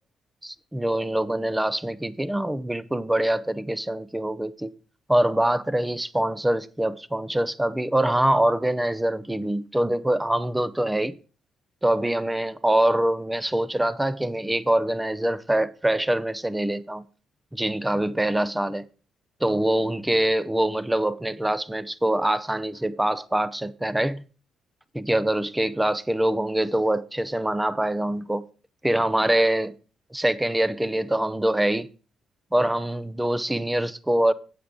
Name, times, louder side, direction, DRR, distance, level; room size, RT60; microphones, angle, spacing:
voice 1, 0.4-4.7 5.1-11.1 11.8-17.1 17.5-18.8 19.4-24.2 24.9-28.4 28.8-29.7 30.1-31.9 32.5-34.3, right 1 dB, 10° right, 0.5 m, -24 dB
8.6 x 8.1 x 3.7 m
cardioid pair, 90°, 0 cm